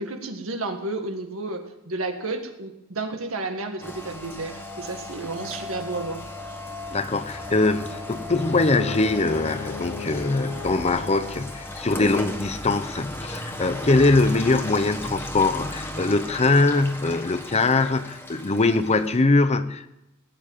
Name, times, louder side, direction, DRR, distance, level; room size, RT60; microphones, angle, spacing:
voice 1, 0.0-6.3 12.3-12.4, right 2 dB, 75° right, 5 dB, 1.8 m, -32 dB
Rain, 3.8-19.2, left 1 dB, 10° left, 1.4 m, -36 dB
voice 2, 6.9-19.9, left 3 dB, 30° left, 12 dB, 0.7 m, -22 dB
Bowed string instrument, 8.5-11.7, left 6 dB, 80° left, 0.7 m, -37 dB
17.0 x 8.8 x 7.3 m, 0.91 s
head